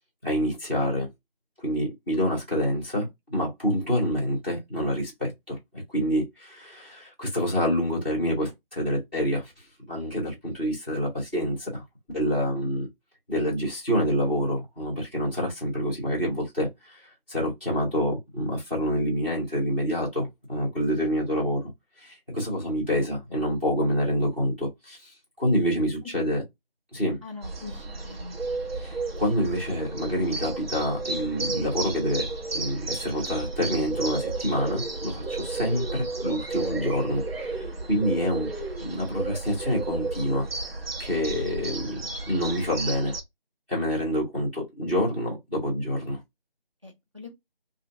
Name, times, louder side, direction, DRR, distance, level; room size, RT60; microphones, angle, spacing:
voice 1, 0.2-1.1 1.6-11.8 12.1-12.9 13.3-17.0 17.3-21.7 22.0-26.4 26.9-27.2 28.8-32.3 32.5-38.5 38.8-40.5 41.0-42.0 42.3-43.1 43.7-46.2, equal, 10° right, 1.3 m, -27 dB
voice 2, 27.2-28.3 46.8-47.3, left 3 dB, 30° right, 0.7 m, -42 dB
sound 1, 27.4-43.2, right 3 dB, 85° right, 1.1 m, -33 dB
3.1 x 2.5 x 2.5 m
figure-of-eight pair, 175°, 29 cm